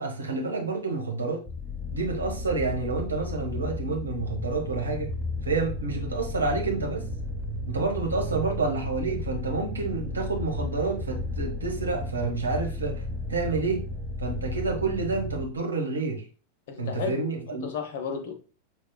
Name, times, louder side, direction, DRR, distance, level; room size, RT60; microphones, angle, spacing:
voice 1, 0.0-1.4 1.9-5.1 5.4-7.1 7.7-13.0 13.3-13.8 14.2-16.2 16.8-17.7, right 3 dB, 75° right, 1.0 m, -29 dB
sound 1, 1.5-15.4, left 1 dB, 5° left, 0.8 m, -34 dB
voice 2, 16.7-18.3, left 5 dB, 55° left, 0.8 m, -34 dB
5.8 x 3.1 x 2.2 m
figure-of-eight pair, 90°, 0 cm